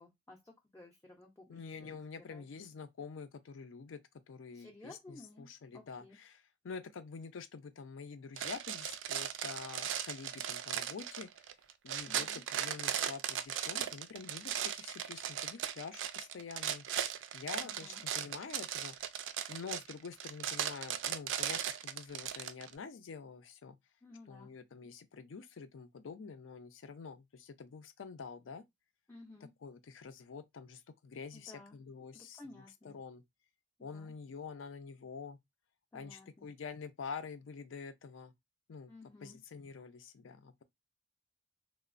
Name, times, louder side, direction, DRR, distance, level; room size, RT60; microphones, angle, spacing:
voice 1, 0.0-1.9 2.3-2.4 4.5-6.2 12.1-12.4 17.6-18.0 24.0-24.5 29.1-29.5 31.3-31.8 32.1-33.0 33.8-34.1 35.9-36.5 38.9-39.4, left 2 dB, 10° left, 0.4 m, -55 dB
voice 2, 1.5-4.0 4.3-11.3 11.8-16.9 17.3-19.1 19.5-23.8 24.3-28.6 29.6-33.2 33.8-35.4 35.9-38.3 38.7-38.9 39.2-40.6, left 5 dB, 85° left, 0.4 m, -47 dB
sound 1, 8.4-22.7, right 10 dB, 75° right, 0.3 m, -37 dB
3.0 x 2.0 x 2.4 m
head